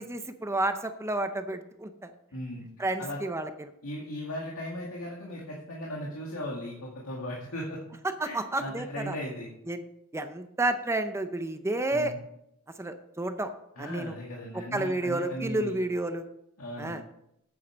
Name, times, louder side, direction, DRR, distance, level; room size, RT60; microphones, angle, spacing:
voice 1, 0.0-2.1 2.8-3.7 8.2-9.1 9.7-9.8 10.1-12.1 12.8-13.5 13.8-14.1 14.5-16.2 16.8-17.0, right 2 dB, 10° right, 8 dB, 0.6 m, -31 dB
voice 2, 2.3-2.6 3.0-3.2 3.8-7.8 8.2-9.5 11.9-12.2 13.8-15.7 16.6-16.9, equal, 80° left, -3 dB, 2.1 m, -37 dB
8.7 x 7.7 x 6.2 m, 0.80 s
head